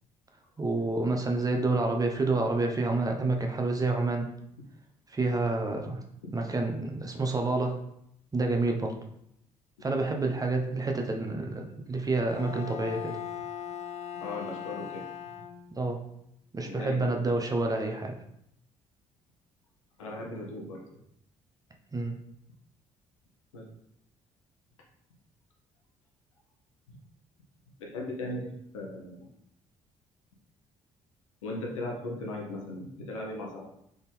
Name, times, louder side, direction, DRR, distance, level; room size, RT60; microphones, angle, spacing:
voice 1, 0.6-4.3 5.1-6.0 6.3-7.8 8.3-8.9 9.8-13.2 15.7-16.0 16.5-18.1 21.9-22.2, right 2 dB, 20° right, 3 dB, 0.8 m, -28 dB
Bowed string instrument, 12.3-16.0, left 9 dB, 40° left, 0.4 m, -39 dB
voice 2, 14.2-15.0 16.6-17.3 20.0-20.8 23.5-23.7 27.8-29.3 31.4-33.7, left 2 dB, 80° left, -1 dB, 0.8 m, -38 dB
4.0 x 3.7 x 3.4 m, 0.75 s
figure-of-eight pair, 45°, 17 cm